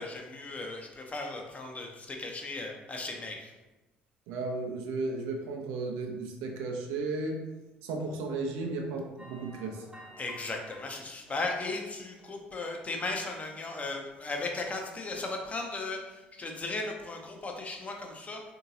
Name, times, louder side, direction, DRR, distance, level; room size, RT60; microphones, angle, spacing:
voice 1, 0.0-3.5 10.2-18.4, left 3 dB, 25° left, 2 dB, 0.6 m, -36 dB
voice 2, 4.3-7.4 7.8-9.8, right 3 dB, 60° right, 1 dB, 0.5 m, -34 dB
sound 1, 9.2-10.7 11.1-11.8 12.1-12.4 12.9-13.0, equal, 15° right, 0.7 m, -51 dB
3.7 x 2.7 x 2.7 m, 1.1 s
figure-of-eight pair, 55°, 5 cm